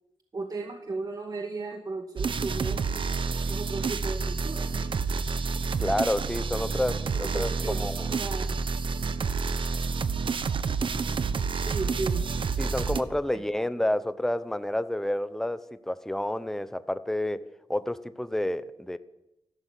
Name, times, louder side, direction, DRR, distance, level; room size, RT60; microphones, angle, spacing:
voice 1, 0.3-4.7 7.2-8.6 11.6-12.3, right 3 dB, 40° right, 3 dB, 2.1 m, -36 dB
sound 1, 2.2-13.0, right 5 dB, 60° right, 1.2 m, -29 dB
voice 2, 5.8-8.1 12.6-19.0, left 1 dB, 5° left, 12 dB, 0.9 m, -30 dB
29.0 x 12.0 x 8.4 m, 0.91 s
wide cardioid pair, 130°, 10 cm